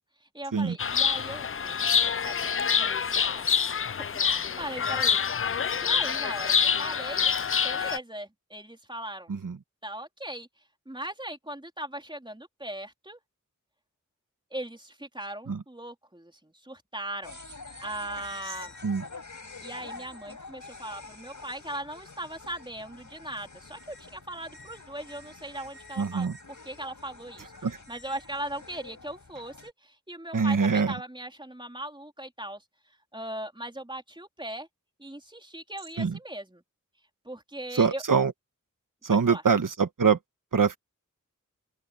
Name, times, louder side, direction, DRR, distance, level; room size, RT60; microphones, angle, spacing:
voice 1, 0.0-3.5 4.1-5.3 5.8-7.3 7.6-9.3 9.8-10.5 10.9-13.2 14.5-17.4 17.8-18.8 19.6-32.6 33.1-34.7 35.0-36.6 37.2-38.0 39.1-39.4, right 1 dB, 15° right, 3.8 m, -39 dB
Chirp tweet, 0.8-8.0, left 7 dB, 40° left, 0.4 m, -26 dB
sound 1, 17.2-29.7, left 3 dB, 70° left, 4.8 m, -47 dB
voice 2, 26.0-26.3 27.6-27.8 30.3-30.9 36.0-36.1 37.8-38.3 39.0-40.2 40.5-40.8, right 5 dB, 80° right, 1.5 m, -24 dB
open air
wide cardioid pair, 55°, 32 cm